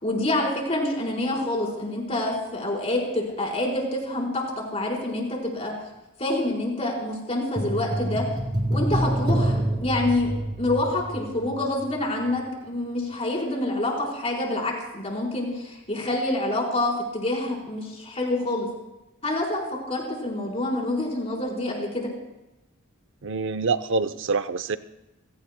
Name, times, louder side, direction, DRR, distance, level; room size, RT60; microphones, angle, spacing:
voice 1, 0.0-4.4 4.7-5.7 6.2-8.2 8.7-18.7 19.2-22.1, left 1 dB, 30° left, -2 dB, 4.3 m, -27 dB
sound 1, 7.6-12.0 12.3-12.4, right 1 dB, 20° right, 1.9 m, -27 dB
voice 2, 23.2-24.8, right 4 dB, 60° right, 12 dB, 0.6 m, -26 dB
28.5 x 17.0 x 2.2 m, 0.97 s
head